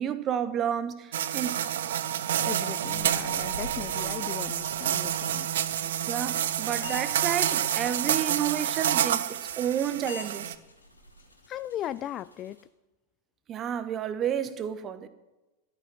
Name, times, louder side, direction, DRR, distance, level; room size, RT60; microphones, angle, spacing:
voice 1, 0.0-1.6 6.1-10.5 13.5-15.1, right 9 dB, 30° right, 12 dB, 1.2 m, -31 dB
sound 1, 1.1-10.6, right 10 dB, 60° right, 0.7 m, -29 dB
voice 2, 2.4-5.8 11.5-12.6, left 11 dB, 30° left, 17 dB, 0.4 m, -37 dB
sound 2, 2.8-12.6, right 1 dB, 85° left, 2.0 m, -51 dB
sound 3, 4.8-12.1, left 4 dB, 70° left, 2.3 m, -49 dB
13.0 x 9.2 x 9.2 m, 1.1 s
figure-of-eight pair, 90°, 0 cm